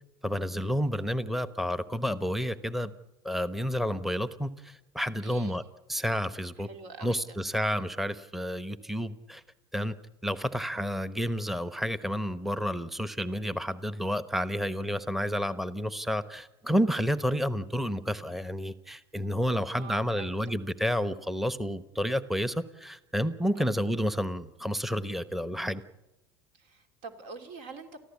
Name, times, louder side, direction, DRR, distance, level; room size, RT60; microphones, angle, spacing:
voice 1, 0.2-2.9 3.2-5.6 5.9-6.7 7.0-9.4 9.7-10.0 10.2-25.8, equal, ahead, 14 dB, 1.0 m, -30 dB
voice 2, 5.2-5.6 6.6-7.4 19.7-20.5 23.5-23.7 26.5-28.0, right 4 dB, 65° right, 7 dB, 2.8 m, -46 dB
29.5 x 14.5 x 8.4 m, 0.99 s
hypercardioid pair, 85°, 13 cm